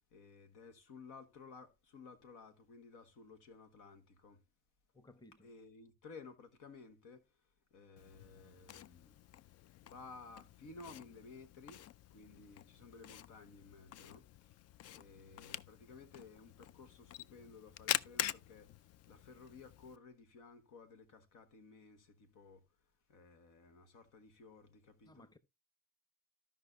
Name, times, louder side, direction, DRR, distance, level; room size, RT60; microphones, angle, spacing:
voice 1, 0.1-4.4 5.4-7.2 7.7-9.1 9.8-11.8 12.1-14.2 14.9-18.7 19.1-22.6 23.1-25.3, left 4 dB, 90° left, 1.4 m, -56 dB
voice 2, 4.9-5.5 25.1-25.4, left 2 dB, 15° left, 0.9 m, -59 dB
Camera, 8.0-20.0, left 11 dB, 55° left, 0.4 m, -45 dB
14.5 x 5.4 x 2.6 m
cardioid pair, 90°, 30 cm